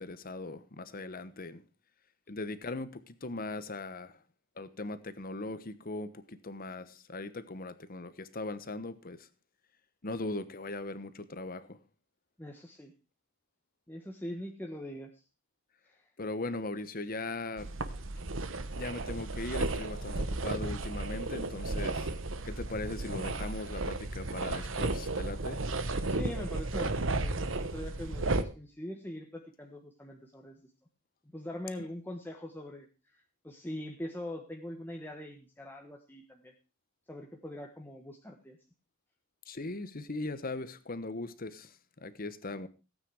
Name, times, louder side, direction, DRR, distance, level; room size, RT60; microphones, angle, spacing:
voice 1, 0.0-1.6 2.3-4.2 4.6-9.3 10.0-11.8 16.2-17.7 18.8-22.1 22.4-25.6 39.5-42.7, left 2 dB, 45° left, 1.2 m, -39 dB
voice 2, 12.4-12.9 13.9-15.1 15.9-16.0 26.1-27.4 27.7-30.7 31.3-36.5 37.1-38.6, left 1 dB, 10° left, 1.4 m, -42 dB
sound 1, 17.6-28.4, right 2 dB, 70° right, 1.2 m, -34 dB
17.0 x 8.9 x 4.8 m
head